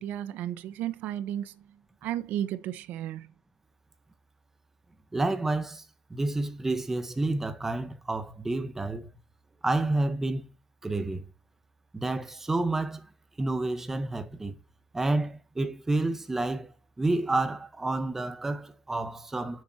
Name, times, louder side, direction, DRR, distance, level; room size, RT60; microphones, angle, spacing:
voice 1, 0.0-1.7 2.0-3.3, right 11 dB, 85° right, 1.1 m, -33 dB
voice 2, 5.1-5.8 6.1-9.1 9.6-10.5 10.8-11.2 11.9-13.1 13.4-14.5 14.9-16.7 17.0-19.6, right 2 dB, 15° right, 1.2 m, -29 dB
10.0 x 7.7 x 2.9 m
cardioid pair, 150°, 3 cm